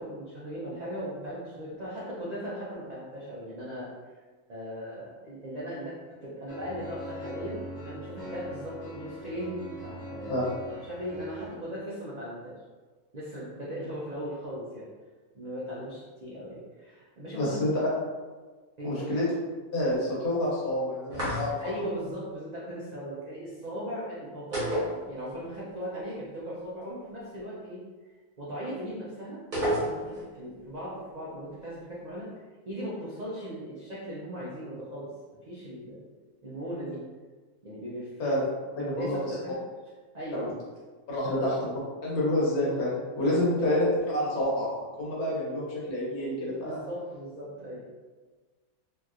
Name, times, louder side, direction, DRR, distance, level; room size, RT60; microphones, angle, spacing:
voice 1, 0.0-3.9 4.5-10.5 10.8-12.6 13.1-14.9 15.3-17.7 18.8-19.1 21.6-24.8 25.0-27.8 28.4-32.3 32.7-35.1 35.5-36.0 36.4-37.0 37.6-38.3 38.8-39.6 40.1-40.5 41.3-41.4 43.4-43.7 46.5-47.8, equal, 90° right, -8 dB, 0.3 m, -38 dB
sound 1, 6.5-11.5, left 1 dB, 55° left, 0.9 m, -41 dB
voice 2, 17.3-17.7 18.8-19.3 19.7-21.5 38.2-38.5 38.8-39.2 40.3-40.5 41.1-46.8, left 1 dB, 75° left, -5 dB, 1.4 m, -28 dB
sound 2, 21.1-21.8 24.5-25.6 25.8-25.9 29.5-30.3, equal, 40° right, 0.9 m, -30 dB
2.9 x 2.7 x 2.4 m, 1.4 s
omnidirectional pair, 1.6 m